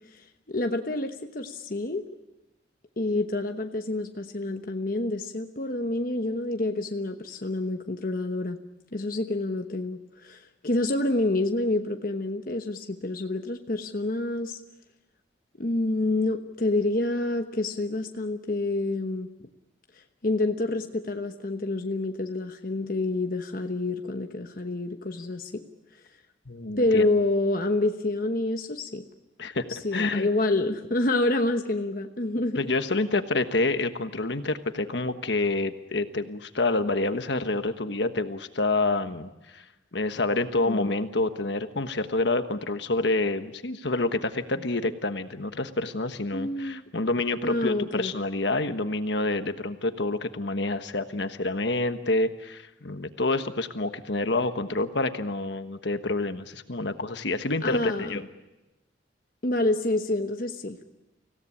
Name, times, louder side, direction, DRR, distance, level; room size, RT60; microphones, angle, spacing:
voice 1, 0.1-2.0 3.0-8.6 8.9-14.6 15.6-19.3 20.2-25.6 26.8-29.0 29.7-32.6 40.7-40.9 46.3-46.8 47.4-48.1 57.6-58.2 59.4-60.8, left 2 dB, 50° left, 4 dB, 1.1 m, -28 dB
voice 2, 26.5-27.1 29.4-29.6 29.9-30.3 32.5-39.6 39.9-58.2, left 2 dB, 70° left, 8 dB, 1.3 m, -28 dB
25.5 x 16.5 x 9.8 m, 1.0 s
head